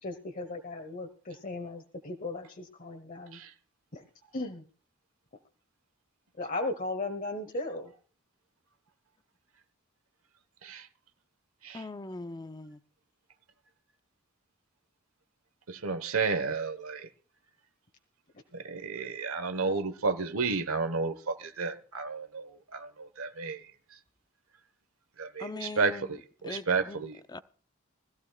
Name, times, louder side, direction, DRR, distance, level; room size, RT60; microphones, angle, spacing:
voice 1, 0.0-3.4 3.9-4.0 4.3-4.6 6.4-7.9, left 2 dB, 40° left, 1.4 m, -36 dB
voice 2, 11.7-12.8 25.4-26.2 26.4-27.0 27.3-27.4, left 2 dB, 20° left, 0.6 m, -41 dB
voice 3, 15.7-17.1 18.5-23.6 23.9-24.0 25.2-26.2 26.4-27.2, right 4 dB, 90° right, 1.4 m, -32 dB
20.5 x 14.5 x 2.4 m
head